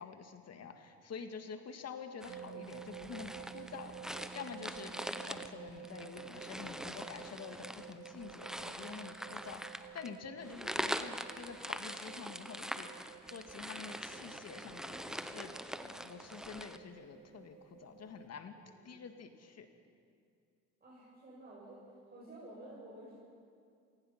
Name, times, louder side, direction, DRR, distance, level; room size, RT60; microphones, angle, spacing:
voice 1, 0.0-15.5 15.8-18.6 18.9-19.7, left 6 dB, 55° left, 7 dB, 2.0 m, -48 dB
sound 1, 2.2-16.8, equal, ahead, 1.0 m, -43 dB
sound 2, 2.3-18.3, right 9 dB, 60° right, 1.1 m, -52 dB
voice 2, 20.8-21.8 22.1-23.1, right 1 dB, 30° right, -7 dB, 7.4 m, -52 dB
26.5 x 18.5 x 5.9 m, 2.3 s
cardioid pair, 90°, 30 cm